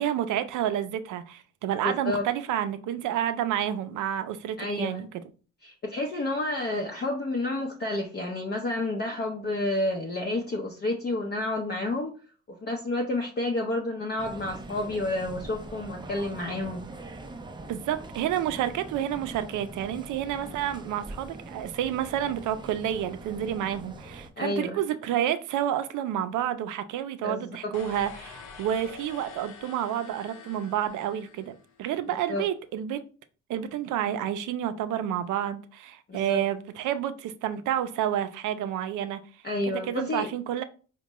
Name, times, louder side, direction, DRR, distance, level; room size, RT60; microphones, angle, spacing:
voice 1, 0.0-5.1 17.7-33.0 33.5-39.2 39.7-40.6, right 10 dB, 80° right, 0.5 m, -29 dB
voice 2, 1.8-2.2 4.6-5.1 5.6-12.1 12.5-16.9 24.4-24.8 27.2-27.7 32.3-32.4 36.1-36.4 39.4-40.3, left 2 dB, 35° left, 0.6 m, -30 dB
sound 1, 14.2-24.3, right 2 dB, 15° right, 0.4 m, -43 dB
sound 2, 27.7-31.9, left 5 dB, 85° left, 0.7 m, -46 dB
4.4 x 2.2 x 2.9 m
cardioid pair, 90°, 30 cm